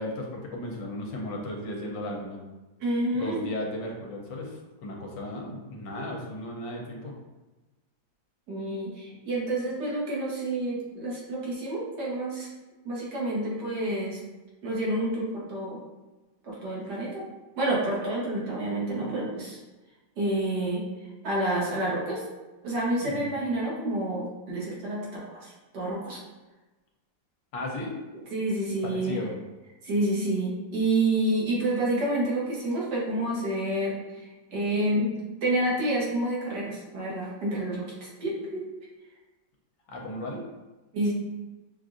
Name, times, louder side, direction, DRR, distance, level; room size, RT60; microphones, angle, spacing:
voice 1, 0.0-2.4 3.1-7.1 23.0-23.3 27.5-27.9 28.8-29.3 39.9-40.4, left 1 dB, 80° left, 0 dB, 1.4 m, -35 dB
voice 2, 2.8-3.5 8.5-12.5 12.8-14.2 14.6-15.8 16.4-17.2 17.6-19.6 20.2-20.8 21.2-22.2 22.6-26.2 28.3-29.2 29.8-37.8 38.2-38.6 40.9-41.1, right 1 dB, 65° right, -5 dB, 1.6 m, -29 dB
5.9 x 2.5 x 2.5 m, 1.1 s
omnidirectional pair, 2.0 m